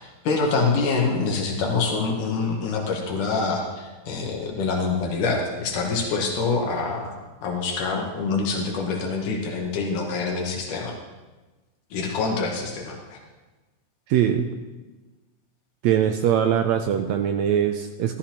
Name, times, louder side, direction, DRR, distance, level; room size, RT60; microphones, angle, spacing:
voice 1, 0.0-7.1 7.4-10.9 11.9-13.2, left 4 dB, 75° left, 0 dB, 2.7 m, -25 dB
voice 2, 14.1-14.5 15.8-18.2, right 9 dB, 85° right, 6 dB, 1.6 m, -22 dB
13.5 x 13.0 x 3.0 m, 1.2 s
omnidirectional pair, 3.7 m